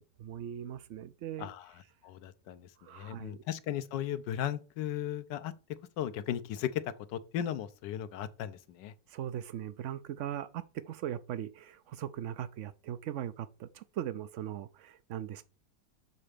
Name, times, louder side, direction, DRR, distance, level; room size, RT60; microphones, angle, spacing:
voice 1, 0.0-1.5 2.8-3.4 9.1-15.4, right 10 dB, 85° right, 0.6 m, -39 dB
voice 2, 1.4-1.7 2.0-8.9, left 10 dB, 85° left, 1.4 m, -36 dB
6.9 x 4.2 x 5.0 m
omnidirectional pair, 1.9 m